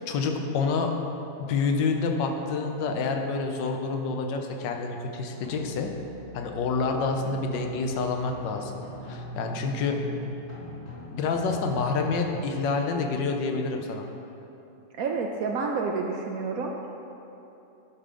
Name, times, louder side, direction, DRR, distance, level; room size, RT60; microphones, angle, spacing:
voice 1, 0.1-0.9 1.4-5.9 6.3-8.7 9.1-10.0 11.1-14.1, left 4 dB, 85° left, 4 dB, 1.4 m, -28 dB
sound 1, 5.4-12.4, right 1 dB, 50° left, 1.6 m, -41 dB
voice 2, 15.0-16.7, right 4 dB, 70° right, 1 dB, 0.8 m, -29 dB
11.0 x 3.7 x 5.1 m, 2.9 s
omnidirectional pair, 1.9 m